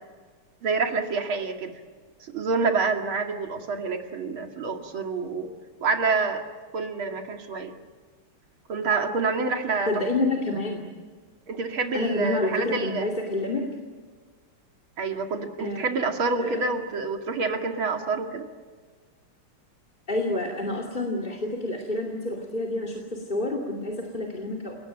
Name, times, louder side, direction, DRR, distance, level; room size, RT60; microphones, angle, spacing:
voice 1, 0.6-1.8 2.2-5.5 5.8-6.4 6.7-7.7 8.7-10.0 11.5-13.1 15.0-18.4, right 4 dB, 65° right, 4 dB, 3.1 m, -27 dB
voice 2, 9.9-10.9 11.9-13.6 15.6-15.9 16.4-16.7 20.1-24.8, left 2 dB, 20° left, 2 dB, 2.6 m, -28 dB
29.0 x 18.5 x 9.1 m, 1.5 s
omnidirectional pair, 2.4 m